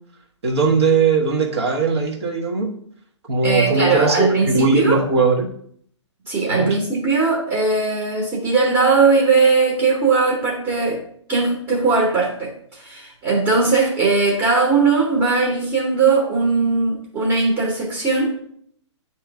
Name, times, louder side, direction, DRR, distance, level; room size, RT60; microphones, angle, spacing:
voice 1, 0.4-2.7 3.3-5.5 6.5-6.8, right 4 dB, 60° right, 0 dB, 1.5 m, -19 dB
voice 2, 3.4-5.0 6.3-11.0 11.3-18.3, right 4 dB, 20° right, -1 dB, 1.2 m, -19 dB
9.0 x 3.2 x 3.5 m, 0.64 s
figure-of-eight pair, 120°, 16 cm